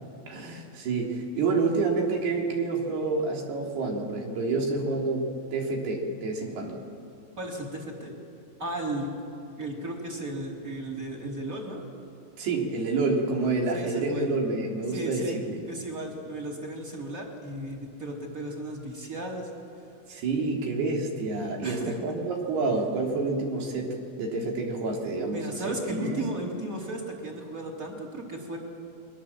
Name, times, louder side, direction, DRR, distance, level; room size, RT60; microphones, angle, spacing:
voice 1, 0.3-5.2 5.5-6.8 12.4-15.6 20.1-26.2, right 3 dB, 80° right, 0 dB, 5.1 m, -28 dB
voice 2, 7.4-8.1 8.6-9.1 9.6-11.8 13.7-14.4 14.9-15.4 15.7-19.5 21.6-22.0 25.3-28.6, right 1 dB, 20° right, -1 dB, 3.4 m, -35 dB
30.0 x 22.5 x 7.4 m, 2.6 s
omnidirectional pair, 4.5 m